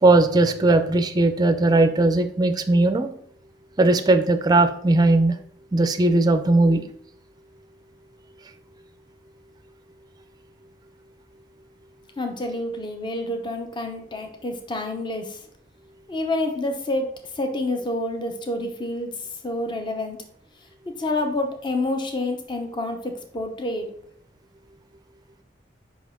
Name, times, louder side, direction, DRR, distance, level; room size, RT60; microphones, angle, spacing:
voice 1, 0.0-3.1 3.8-5.4 5.7-6.8, right 2 dB, 20° right, 8 dB, 0.5 m, -18 dB
voice 2, 12.2-15.4 16.1-20.2 20.9-23.9, left 2 dB, 25° left, 5 dB, 0.8 m, -28 dB
5.4 x 5.3 x 3.7 m, 0.63 s
head